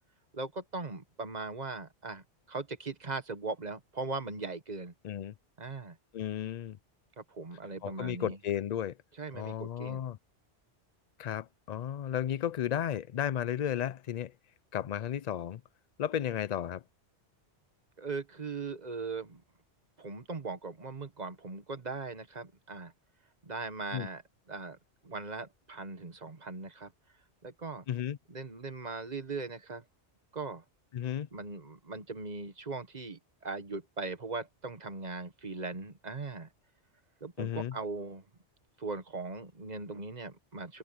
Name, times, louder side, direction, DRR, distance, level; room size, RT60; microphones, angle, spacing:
voice 1, 0.3-4.9 5.6-6.0 7.2-8.4 9.2-10.0 18.0-19.4 20.0-22.9 23.4-24.2 24.5-24.8 25.0-26.9 27.4-27.8 28.3-29.8 30.3-30.6 31.3-36.5 37.2-38.2 38.8-40.8, right 3 dB, 40° right, 1.4 m, -39 dB
voice 2, 6.1-6.8 7.8-8.9 9.3-10.2 11.2-14.3 14.7-15.6 16.0-16.8 23.9-24.1 27.9-28.2 30.9-31.3 37.4-37.8, left 10 dB, 65° left, 0.4 m, -33 dB
omnidirectional pair, 1.2 m